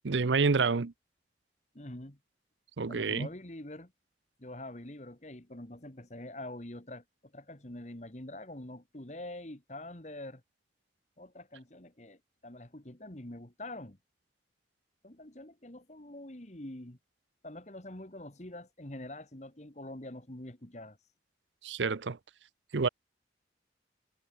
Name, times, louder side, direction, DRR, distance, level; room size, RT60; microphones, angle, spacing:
voice 1, 0.0-0.9 2.8-3.3 21.6-22.2 22.7-22.9, right 4 dB, 90° right, 0.7 m, -28 dB
voice 2, 1.7-2.2 2.9-3.9 4.4-10.4 11.2-14.0 15.0-17.0 17.4-21.0, left 1 dB, 40° left, 2.0 m, -45 dB
head